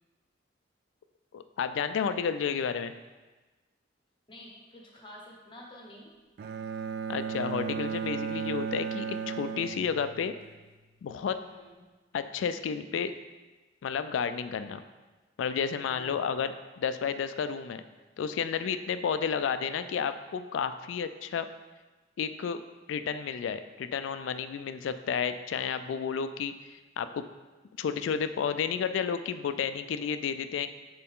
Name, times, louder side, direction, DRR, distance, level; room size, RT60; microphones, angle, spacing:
voice 1, 1.3-2.9 7.1-10.3 11.0-11.4 12.1-13.1 13.8-14.8 15.4-17.8 18.2-21.5 22.2-22.6 22.9-27.2 27.8-30.7, left 7 dB, 70° left, 11 dB, 0.3 m, -31 dB
voice 2, 4.3-6.1 11.4-11.9 15.9-16.4, equal, 25° left, -1 dB, 1.2 m, -50 dB
Bowed string instrument, 6.4-10.5, right 6 dB, 55° right, 0.3 m, -35 dB
6.8 x 4.1 x 3.6 m, 1.2 s
head